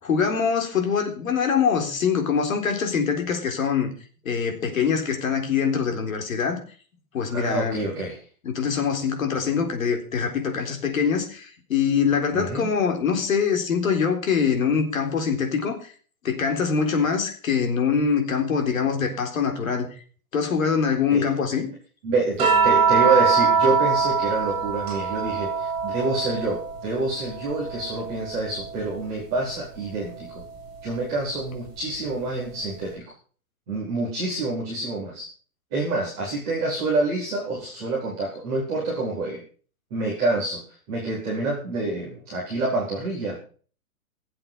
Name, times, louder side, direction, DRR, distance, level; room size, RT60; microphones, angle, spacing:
voice 1, 0.0-3.9 4.3-6.6 7.1-7.9 8.4-15.9 16.2-19.9 20.3-21.7, left 6 dB, 65° left, 4 dB, 3.9 m, -24 dB
voice 2, 7.3-8.2 12.3-12.7 21.1-21.3 22.0-30.4 30.8-33.0 33.7-35.3 35.7-39.4 39.9-40.6 40.9-43.4, right 2 dB, 5° right, -11 dB, 0.6 m, -27 dB
sound 1, 22.4-26.9 27.2-28.9 30.4-30.6, right 5 dB, 25° right, 7.9 m, -23 dB
17.0 x 7.7 x 5.5 m, 0.41 s
hypercardioid pair, 180°, 44 cm